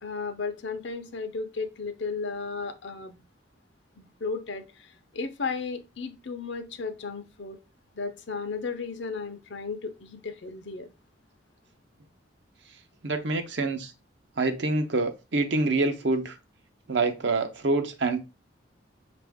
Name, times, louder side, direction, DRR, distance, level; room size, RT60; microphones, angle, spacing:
voice 1, 0.0-3.2 4.0-7.6 7.9-10.9, left 4 dB, 65° left, 0.7 m, -34 dB
voice 2, 13.0-13.9 14.4-16.4 16.9-18.2, right 3 dB, 65° right, 0.7 m, -26 dB
5.9 x 2.5 x 3.4 m
head